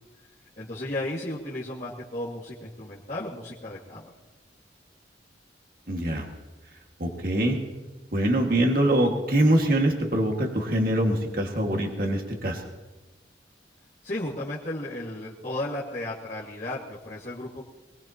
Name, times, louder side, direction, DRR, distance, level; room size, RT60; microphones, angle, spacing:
voice 1, 0.6-4.1 14.0-17.6, left 1 dB, 40° left, -8 dB, 2.1 m, -34 dB
voice 2, 5.9-6.3 7.0-7.6 8.1-12.6, right 1 dB, 50° right, 1 dB, 2.0 m, -24 dB
23.5 x 19.0 x 2.9 m, 1.2 s
head